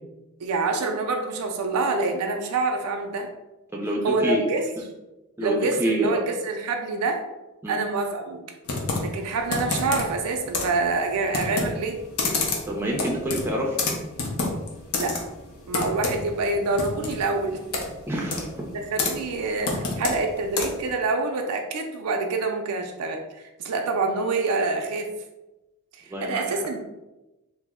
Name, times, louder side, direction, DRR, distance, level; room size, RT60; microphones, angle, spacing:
voice 1, 0.4-3.3 4.0-4.7 5.4-7.2 7.7-8.4 9.0-12.0 15.0-15.2 15.7-17.6 18.1-18.2 18.9-25.1 25.9-26.8, right 3 dB, 85° right, 3 dB, 0.4 m, -26 dB
voice 2, 3.7-4.4 5.4-6.2 7.6-7.8 12.7-13.8 18.1-18.5 26.1-26.6, right 1 dB, 10° right, -1 dB, 0.4 m, -27 dB
Computer keyboard, 8.6-20.9, left 3 dB, 75° left, 0.6 m, -30 dB
2.9 x 2.0 x 3.5 m, 1.0 s
head